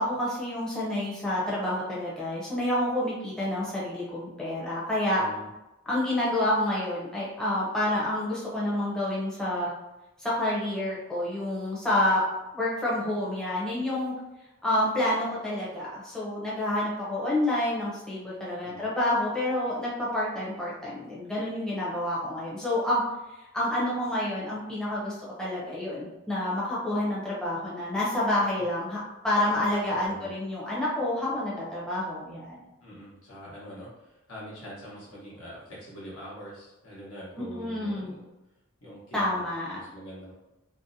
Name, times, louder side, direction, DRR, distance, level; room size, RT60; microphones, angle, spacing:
voice 1, 0.0-5.2 5.9-9.7 10.2-12.2 12.5-14.1 14.6-23.0 23.5-29.0 29.2-32.6 37.4-38.2 39.1-39.8, left 1 dB, 5° left, -8 dB, 0.5 m, -28 dB
voice 2, 5.2-5.5 18.6-18.8 28.6-28.7 29.5-29.6 30.0-30.3 32.8-38.3 38.8-40.3, equal, 90° left, -6 dB, 1.1 m, -44 dB
2.6 x 2.0 x 2.6 m, 0.98 s
head